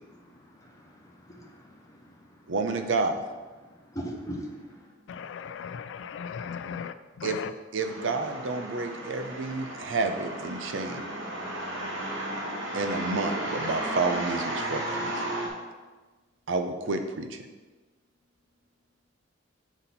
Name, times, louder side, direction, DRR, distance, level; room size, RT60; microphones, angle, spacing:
voice 1, 0.1-2.5 3.6-4.9, right 1 dB, 15° left, -1 dB, 0.9 m, -42 dB
voice 2, 2.5-3.2 7.2-7.4 7.7-11.1 12.7-15.1 16.5-17.5, right 3 dB, 85° right, 7 dB, 0.6 m, -30 dB
voice 3, 5.1-6.9 7.2-7.5, left 7 dB, 70° left, 12 dB, 0.3 m, -37 dB
sound 1, 7.8-15.5, right 1 dB, 70° right, 1.3 m, -34 dB
7.0 x 4.1 x 4.1 m, 1.3 s
head